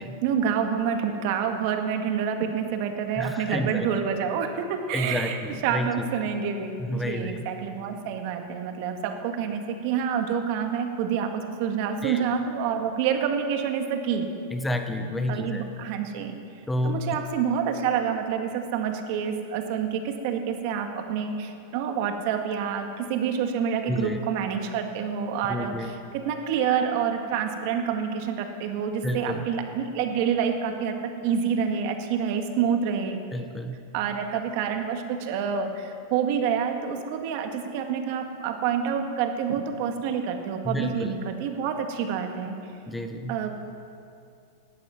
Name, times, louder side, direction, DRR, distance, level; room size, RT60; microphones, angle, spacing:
voice 1, 0.0-5.4 5.6-14.3 15.3-16.4 16.8-33.2 33.9-42.6 43.3-43.5, right 7 dB, 55° right, 5 dB, 1.8 m, -28 dB
voice 2, 3.2-3.9 4.9-6.0 6.8-7.5 12.0-12.2 14.5-15.7 16.7-17.0 23.8-24.2 25.4-25.9 29.0-29.5 33.3-33.8 40.6-41.1 42.9-43.3, left 1 dB, 10° left, 7 dB, 1.0 m, -30 dB
17.0 x 12.5 x 6.0 m, 2.5 s
hypercardioid pair, 120°, 0 cm